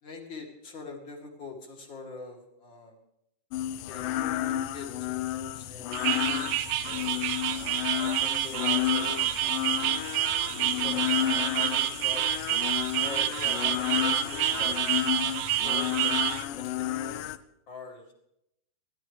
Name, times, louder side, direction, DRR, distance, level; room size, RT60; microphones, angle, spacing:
voice 1, 0.0-3.0 3.9-4.0 4.7-6.2 6.8-7.2 7.5-9.3 10.7-12.4 13.0-16.2 16.6-17.3 17.7-18.1, left 3 dB, 35° left, 1 dB, 2.4 m, -44 dB
sound 1, 3.5-17.4, left 13 dB, 85° left, 1.9 m, -31 dB
sound 2, 5.9-16.4, right 13 dB, 75° right, 2.5 m, -28 dB
29.5 x 12.0 x 3.2 m, 0.78 s
omnidirectional pair, 4.7 m